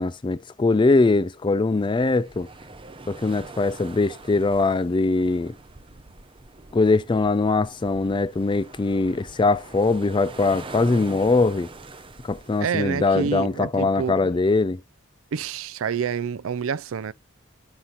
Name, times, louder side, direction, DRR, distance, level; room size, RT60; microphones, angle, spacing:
voice 1, 0.0-2.5 3.1-5.5 6.7-11.7 12.2-14.8, left 3 dB, 20° left, 0.4 m, -22 dB
sound 1, 1.8-12.6, right 2 dB, 25° right, 0.8 m, -43 dB
voice 2, 12.6-14.2 15.3-17.1, right 6 dB, 65° right, 0.4 m, -28 dB
9.8 x 5.5 x 4.4 m
head